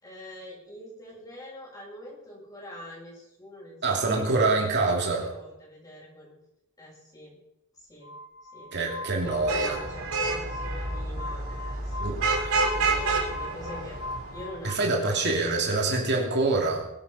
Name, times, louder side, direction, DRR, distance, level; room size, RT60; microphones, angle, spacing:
voice 1, 0.0-4.8 5.2-6.3 6.8-7.4 7.8-8.1 8.5-8.7 9.2-14.0 14.3-16.0 16.3-16.4, left 1 dB, 15° left, -4 dB, 7.1 m, -44 dB
voice 2, 3.8-5.3 8.7-9.8 12.0-12.6 14.6-16.9, right 3 dB, 50° right, 0 dB, 2.9 m, -26 dB
Glass, 8.0-14.8, left 2 dB, 50° left, 1.1 m, -41 dB
Vehicle horn car horn honking / Traffic noise roadway noise, 9.2-14.5, right 3 dB, 70° right, 4.2 m, -29 dB
22.0 x 9.6 x 5.7 m, 0.84 s
head